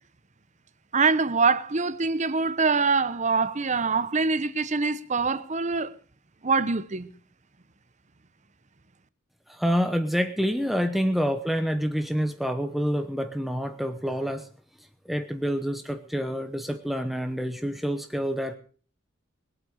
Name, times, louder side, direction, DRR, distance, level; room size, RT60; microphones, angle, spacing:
voice 1, 0.9-5.9 6.4-7.1, right 4 dB, 35° right, 1.0 m, -24 dB
voice 2, 9.5-14.5 15.0-18.6, equal, ahead, 0.9 m, -27 dB
21.0 x 8.8 x 6.5 m
head